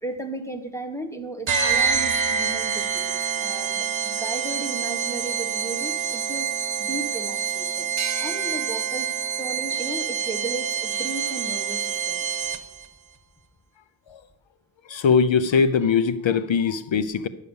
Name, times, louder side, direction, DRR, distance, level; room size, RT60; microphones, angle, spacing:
voice 1, 0.0-9.1 9.4-12.3, right 2 dB, 5° left, 1.2 m, -35 dB
sound 1, 1.5-12.8, right 7 dB, 70° right, 1.0 m, -26 dB
sound 2, 8.0-11.3, right 6 dB, 35° right, 0.6 m, -39 dB
voice 2, 14.9-17.3, left 6 dB, 70° left, 0.7 m, -21 dB
10.5 x 6.6 x 7.0 m
wide cardioid pair, 95°, 48 cm